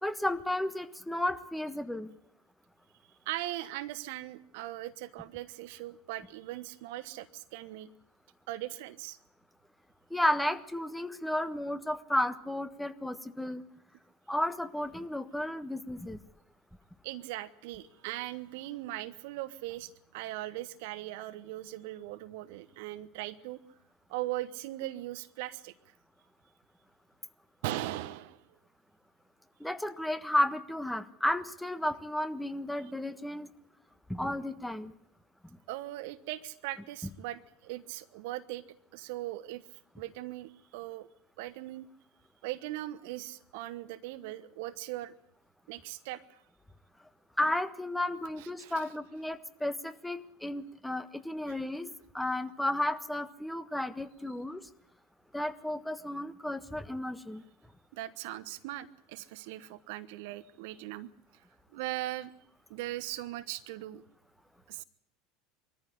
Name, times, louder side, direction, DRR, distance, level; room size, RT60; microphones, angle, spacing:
voice 1, 0.0-2.1 10.1-13.6 14.3-16.2 29.6-33.5 34.1-34.9 47.4-54.7 55.3-57.4, left 1 dB, 5° left, 11 dB, 1.4 m, -33 dB
voice 2, 3.2-7.9 8.5-9.2 17.0-23.6 24.1-25.7 27.6-28.4 35.7-38.6 38.9-41.1 41.4-41.9 42.4-45.1 45.7-46.4 48.4-48.9 51.5-51.6 57.9-61.1 61.7-62.3 62.7-64.0 64.7-64.8, right 15 dB, 60° right, 13 dB, 1.1 m, -39 dB
23.0 x 14.0 x 10.0 m, 0.73 s
figure-of-eight pair, 75°, 0 cm